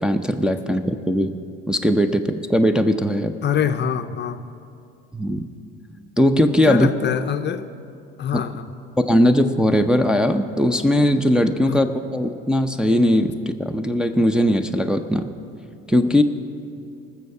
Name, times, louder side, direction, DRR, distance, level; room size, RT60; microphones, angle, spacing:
voice 1, 0.0-1.3 1.7-3.4 5.1-5.5 6.2-6.9 8.3-8.4 9.1-15.3 15.9-16.2, equal, 5° right, 4 dB, 0.6 m, -19 dB
voice 2, 3.4-4.4 6.7-7.7 8.2-8.7 11.6-11.8, left 8 dB, 35° left, 9 dB, 0.6 m, -24 dB
19.5 x 7.1 x 4.7 m, 2.5 s
hypercardioid pair, 75°, 30 cm